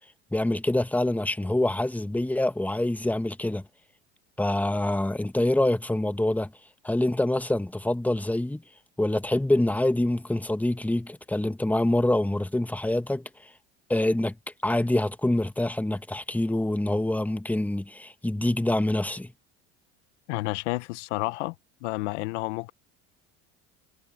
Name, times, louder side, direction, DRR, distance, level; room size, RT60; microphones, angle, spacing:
voice 1, 0.3-3.6 4.4-6.5 6.8-8.6 9.0-13.3 13.9-14.3 14.6-19.3, left 1 dB, 5° left, 1.5 m, -25 dB
voice 2, 20.3-21.5 21.8-22.7, left 22 dB, 85° left, 0.7 m, -30 dB
supercardioid pair, 90°, 35 cm